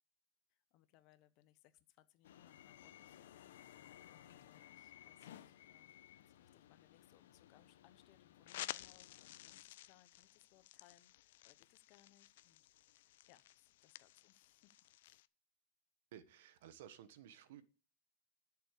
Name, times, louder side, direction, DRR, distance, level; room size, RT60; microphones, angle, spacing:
voice 1, 0.5-5.9 6.2-14.8 15.0-15.3, left 14 dB, 35° left, 0.9 m, -70 dB
sound 1, 2.2-9.6, left 11 dB, 80° left, 0.9 m, -60 dB
sound 2, 8.5-15.3, left 15 dB, 60° left, 0.4 m, -53 dB
voice 2, 16.1-17.6, right 10 dB, 60° right, 1.2 m, -56 dB
11.0 x 7.1 x 6.6 m
supercardioid pair, 170°, 0 cm